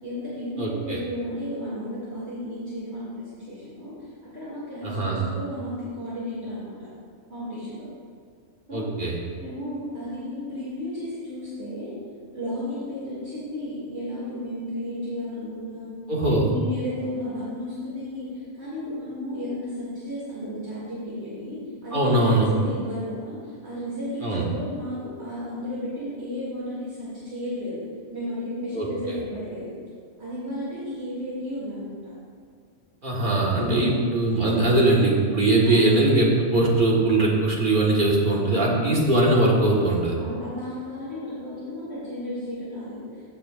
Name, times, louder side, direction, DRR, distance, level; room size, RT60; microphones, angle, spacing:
voice 1, 0.0-3.9 4.3-6.9 7.3-7.9 8.7-8.9 9.4-11.9 12.3-15.9 16.4-27.8 28.1-29.7 30.2-32.1 33.6-33.9 35.6-35.9 38.5-38.9 40.2-43.3, left 1 dB, 60° right, -10 dB, 2.7 m, -33 dB
voice 2, 0.6-1.0 4.8-5.2 8.7-9.2 16.1-16.5 21.9-22.5 24.2-24.4 28.7-28.9 33.0-40.1, right 2 dB, 45° right, -4 dB, 1.6 m, -21 dB
14.5 x 7.4 x 2.5 m, 2.2 s
omnidirectional pair, 1.2 m